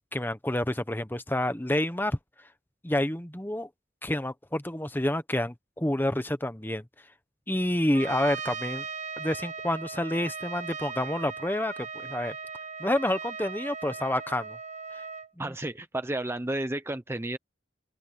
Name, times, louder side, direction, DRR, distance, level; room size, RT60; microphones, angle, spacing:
voice 1, 0.1-2.2 2.8-3.7 4.0-6.8 7.5-8.9 9.2-12.3 12.8-14.6 15.4-15.5, left 1 dB, 10° left, 1.1 m, -28 dB
Trumpet, 7.9-15.3, right 5 dB, 40° right, 1.2 m, -38 dB
voice 2, 15.4-17.4, right 1 dB, 15° right, 0.7 m, -32 dB
open air
head